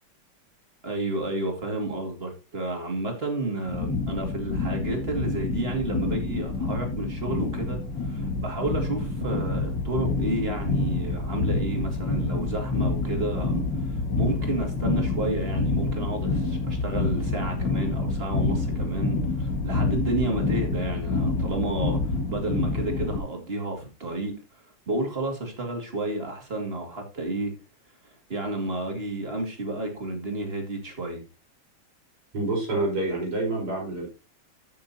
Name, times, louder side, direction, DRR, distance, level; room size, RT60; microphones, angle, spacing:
voice 1, 0.8-27.5 28.3-31.2, right 2 dB, 25° right, 2.5 m, -31 dB
sound 1, 3.7-23.2, left 3 dB, 55° left, 2.5 m, -27 dB
voice 2, 32.3-34.1, right 2 dB, 85° right, 5.9 m, -27 dB
15.0 x 6.6 x 2.8 m
omnidirectional pair, 2.4 m